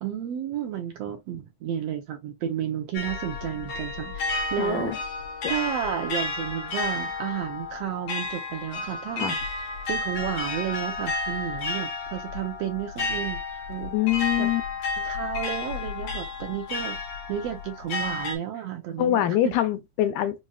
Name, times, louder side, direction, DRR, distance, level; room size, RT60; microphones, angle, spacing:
voice 1, 0.0-4.9 5.5-9.4 9.9-13.4 13.7-14.0 14.4-14.5 15.0-17.0 17.3-19.5, right 9 dB, 70° right, 1.7 m, -32 dB
sound 1, 2.9-18.4, left 3 dB, 60° left, 1.3 m, -32 dB
voice 2, 4.6-5.0 9.2-9.4 13.9-14.6 19.0-20.4, left 12 dB, 80° left, 2.0 m, -24 dB
5.3 x 2.4 x 2.4 m
omnidirectional pair, 3.4 m